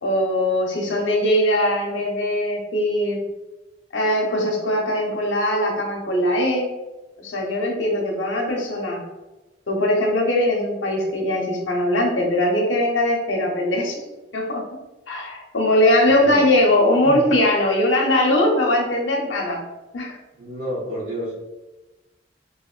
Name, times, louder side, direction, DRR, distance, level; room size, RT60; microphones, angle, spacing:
voice 1, 0.0-3.2 3.9-6.7 7.2-9.0 9.7-14.0 14.3-14.6 15.1-19.6 19.9-20.2, left 1 dB, 90° left, 0 dB, 0.7 m, -20 dB
voice 2, 16.0-16.4 17.0-17.2 20.4-21.4, equal, 65° right, -9 dB, 0.9 m, -30 dB
2.9 x 2.6 x 2.4 m, 1.1 s
head